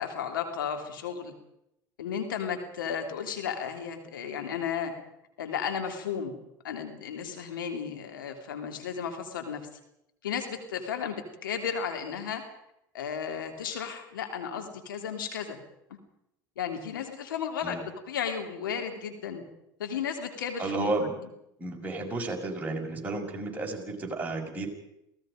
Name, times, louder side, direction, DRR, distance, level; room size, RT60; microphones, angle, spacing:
voice 1, 0.0-1.3 2.0-4.9 5.4-6.4 6.6-9.6 10.2-12.4 12.9-15.6 15.9-16.0 16.6-19.4 19.8-20.9, left 7 dB, 90° left, 4 dB, 3.2 m, -34 dB
voice 2, 20.6-21.1 21.6-24.7, right 2 dB, 15° right, -1 dB, 6.5 m, -32 dB
28.5 x 18.0 x 5.2 m, 0.81 s
hypercardioid pair, 85°, 11 cm